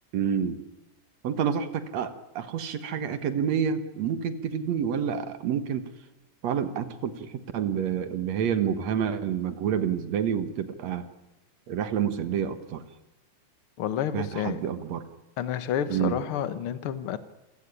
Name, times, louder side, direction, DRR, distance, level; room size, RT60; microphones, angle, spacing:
voice 1, 0.1-0.6 1.2-5.9 6.4-11.1 11.7-12.8 14.1-15.1 15.9-16.2, right 8 dB, 60° right, 11 dB, 2.5 m, -28 dB
voice 2, 13.8-14.7 15.4-17.2, left 9 dB, 55° left, 13 dB, 1.8 m, -30 dB
28.0 x 16.0 x 9.9 m, 1.0 s
omnidirectional pair, 3.6 m